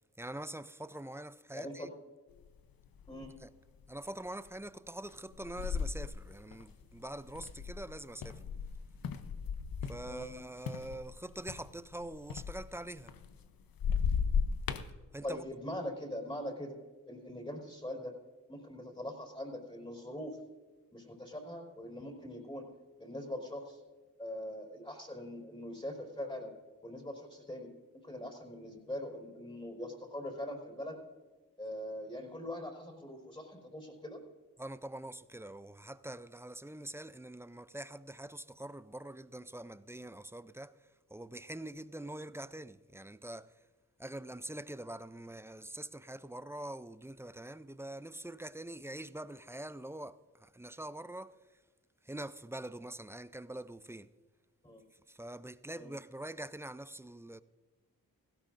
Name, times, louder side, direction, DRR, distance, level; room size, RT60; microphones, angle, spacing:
voice 1, 0.2-1.9 3.4-3.5 3.9-8.4 9.8-13.1 15.1-15.6 34.6-40.7 41.1-43.5 44.0-51.4 52.0-54.1 55.1-57.4, right 1 dB, 5° right, 0.5 m, -44 dB
voice 2, 1.5-1.9 3.1-3.3 10.1-10.3 15.2-16.8 17.1-18.1 18.5-20.4 20.9-22.7 23.0-23.8 24.2-26.5 26.8-31.0 31.6-34.2 54.6-54.8 55.8-55.9, left 1 dB, 15° left, 4.3 m, -42 dB
sound 1, 2.4-2.5 2.9-3.4 4.0-4.2 5.1-10.4 10.7-13.5 13.8-14.9, left 6 dB, 75° left, 0.9 m, -36 dB
18.0 x 16.0 x 2.6 m
cardioid pair, 65°, 35 cm